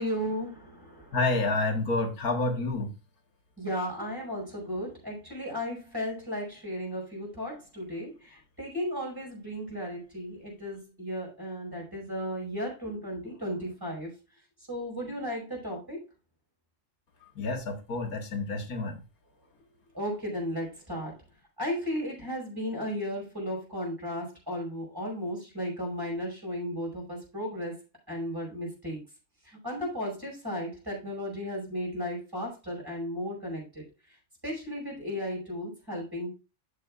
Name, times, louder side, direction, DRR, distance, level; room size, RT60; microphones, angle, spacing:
voice 1, 0.0-1.2 3.6-14.1 14.7-16.0 19.9-21.1 21.6-27.7 28.1-29.0 29.4-33.8 34.4-36.3, equal, 15° right, -2 dB, 5.3 m, -35 dB
voice 2, 1.1-2.9 17.4-19.0, left 2 dB, 85° left, 4 dB, 1.9 m, -29 dB
11.5 x 7.0 x 2.4 m, 0.31 s
omnidirectional pair, 1.5 m